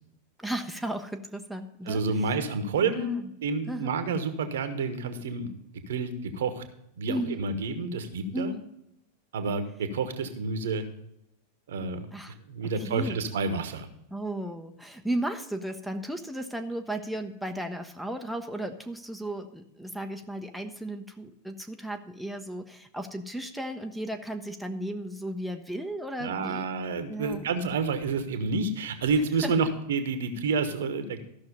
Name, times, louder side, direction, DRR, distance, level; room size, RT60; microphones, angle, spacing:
voice 1, 0.4-2.3 2.8-3.3 3.7-4.0 7.1-7.5 8.3-8.7 12.1-12.4 12.8-13.2 14.1-26.7 27.1-27.5 29.4-29.5, right 1 dB, ahead, 4 dB, 0.7 m, -35 dB
voice 2, 1.9-3.1 3.4-5.5 5.9-6.6 7.0-8.5 9.3-10.8 11.7-12.1 12.5-13.9 26.2-31.2, right 4 dB, 60° right, 9 dB, 1.1 m, -29 dB
13.5 x 6.1 x 5.2 m, 0.79 s
figure-of-eight pair, 90°, 0 cm